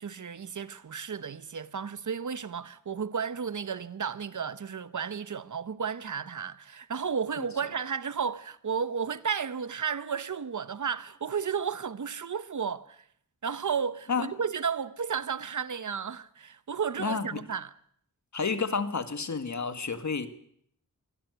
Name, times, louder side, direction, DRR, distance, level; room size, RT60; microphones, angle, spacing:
voice 1, 0.0-13.0 13.4-17.7, right 6 dB, 65° right, 1.0 m, -33 dB
voice 2, 17.0-17.4 18.3-20.3, left 5 dB, 60° left, 1.8 m, -30 dB
23.5 x 16.0 x 8.0 m
wide cardioid pair, 105°, 33 cm